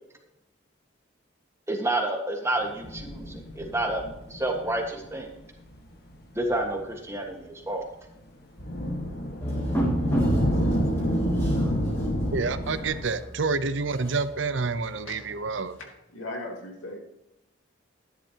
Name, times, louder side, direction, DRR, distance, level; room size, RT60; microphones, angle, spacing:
voice 1, 1.7-4.0 4.3-5.3 6.3-7.8, right 1 dB, 15° right, 2 dB, 1.5 m, -29 dB
sound 1, 2.7-4.9 5.7-5.8 6.5-6.9 8.6-13.0, equal, 50° left, 1.5 m, -28 dB
sound 2, 9.4-15.8, right 1 dB, 15° left, 3.1 m, -33 dB
voice 2, 12.3-15.8, right 4 dB, 70° right, 13 dB, 0.7 m, -28 dB
voice 3, 16.1-17.0, left 2 dB, 85° left, 0 dB, 2.9 m, -36 dB
12.5 x 10.5 x 2.9 m, 0.92 s
head